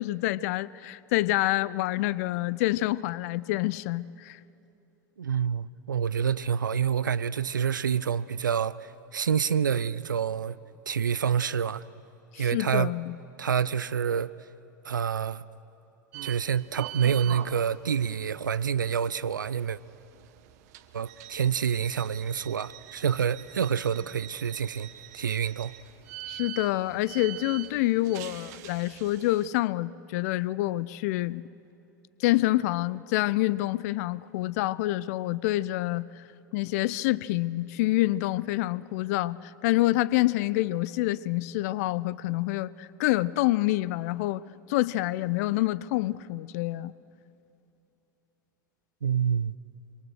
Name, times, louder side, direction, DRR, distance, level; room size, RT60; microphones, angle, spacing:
voice 1, 0.0-4.4 12.3-13.1 26.3-31.4 32.2-36.2 36.5-44.4 44.7-46.9, left 17 dB, 50° left, 0.5 m, -27 dB
voice 2, 5.2-10.6 10.9-11.8 12.4-12.9 13.4-14.3 14.8-15.4 16.2-19.8 20.9-24.9 25.1-25.7 49.0-49.5, right 7 dB, 75° right, 0.5 m, -27 dB
sound 1, 16.1-29.5, right 15 dB, 55° right, 0.9 m, -44 dB
25.5 x 23.0 x 6.5 m
figure-of-eight pair, 80°, 11 cm